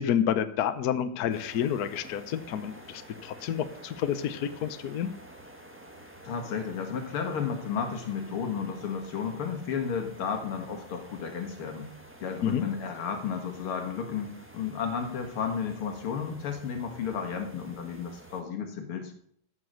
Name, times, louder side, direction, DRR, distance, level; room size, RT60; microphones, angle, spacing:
voice 1, 0.0-5.1 12.4-12.6, left 9 dB, 60° left, 11 dB, 1.1 m, -29 dB
sound 1, 1.3-18.4, right 1 dB, 5° right, 1.2 m, -50 dB
voice 2, 6.2-11.9 12.2-19.1, left 6 dB, 85° left, 5 dB, 2.5 m, -33 dB
14.5 x 6.1 x 6.5 m, 0.64 s
omnidirectional pair, 2.3 m